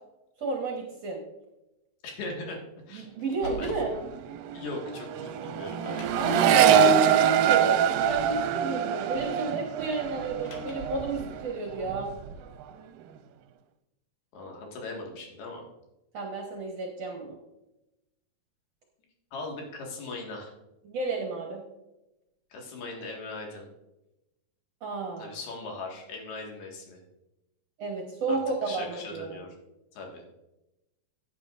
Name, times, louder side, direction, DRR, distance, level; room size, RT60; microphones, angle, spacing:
voice 1, 0.4-1.2 2.9-4.0 6.2-12.1 16.1-17.4 20.8-21.6 24.8-25.4 27.8-29.4, right 3 dB, 60° right, 0 dB, 1.8 m, -32 dB
voice 2, 2.0-2.6 2.9-3.1 3.6-3.7 4.5-6.2 14.3-15.6 19.3-20.5 22.5-23.7 25.2-27.0 28.3-28.4 28.7-29.6 29.9-30.3, left 3 dB, 80° left, 0 dB, 3.8 m, -39 dB
Car, 3.2-3.9 5.0-5.1 5.8-6.4 7.8-8.4 10.2-11.0, left 2 dB, 60° left, 2.8 m, -42 dB
Accelerating revving vroom, 3.4-3.7 3.9-11.5 11.8-12.4, right 8 dB, 80° right, 2.3 m, -24 dB
15.0 x 8.9 x 2.5 m, 0.94 s
omnidirectional pair, 4.4 m